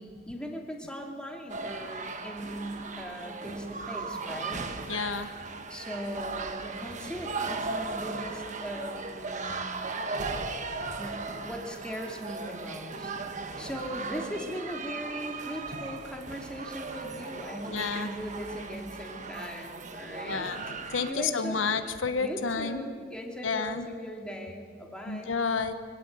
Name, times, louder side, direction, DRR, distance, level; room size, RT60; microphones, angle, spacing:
voice 1, 0.0-4.6 5.7-9.7 11.0-13.1 13.6-20.5 20.9-21.9 22.2-25.3, equal, 5° left, 0 dB, 2.6 m, -39 dB
sound 1, 1.5-21.1, right 3 dB, 40° right, 1.3 m, -37 dB
voice 2, 4.9-5.3 17.7-18.1 20.2-22.9 23.4-23.9 25.1-25.7, left 5 dB, 90° left, 9 dB, 1.2 m, -30 dB
24.0 x 17.0 x 8.1 m, 2.1 s
head